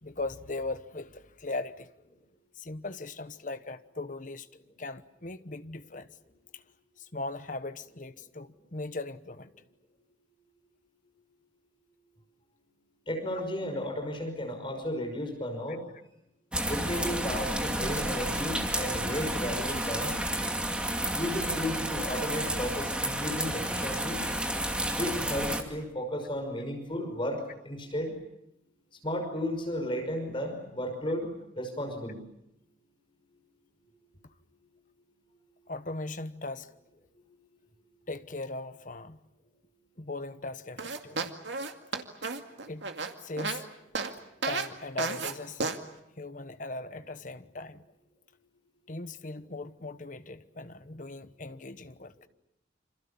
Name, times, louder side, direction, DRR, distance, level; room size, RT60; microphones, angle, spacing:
voice 1, 0.0-1.9 2.6-4.5 4.8-6.1 6.5-6.6 7.0-9.5 35.7-36.7 38.1-39.2 40.0-41.3 42.7-42.9 43.2-43.6 44.5-45.6 46.2-47.8 48.9-52.1, left 2 dB, 45° left, 1.1 m, -39 dB
voice 2, 13.1-15.8 16.7-20.2 21.1-24.3 24.9-28.1 29.0-32.2, left 1 dB, 25° left, 5.6 m, -34 dB
sound 1, 16.5-25.6, right 1 dB, 5° right, 2.4 m, -31 dB
sound 2, 40.8-43.6 44.0-44.1 44.4-44.7 45.0-45.3 45.6-45.8, right 4 dB, 75° right, 2.2 m, -32 dB
27.5 x 26.5 x 7.1 m
head